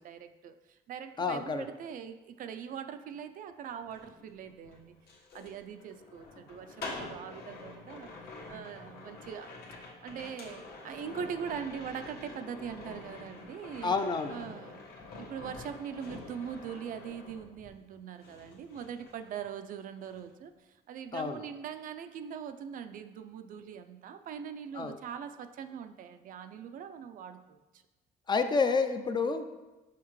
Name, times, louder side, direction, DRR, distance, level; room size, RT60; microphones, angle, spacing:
voice 1, 0.0-5.0 5.3-8.1 8.5-9.5 10.0-13.9 14.3-14.8 15.2-27.8, right 7 dB, 55° right, 9 dB, 0.4 m, -42 dB
voice 2, 1.2-1.6 13.8-14.3 21.1-21.4 24.7-25.0 28.3-29.4, left 4 dB, 25° left, 8 dB, 0.4 m, -29 dB
sound 1, 3.8-17.9 18.2-19.7 20.0-20.3, left 3 dB, 70° left, 1.4 m, -47 dB
5.7 x 5.5 x 3.1 m, 1.1 s
cardioid pair, 110°, 17 cm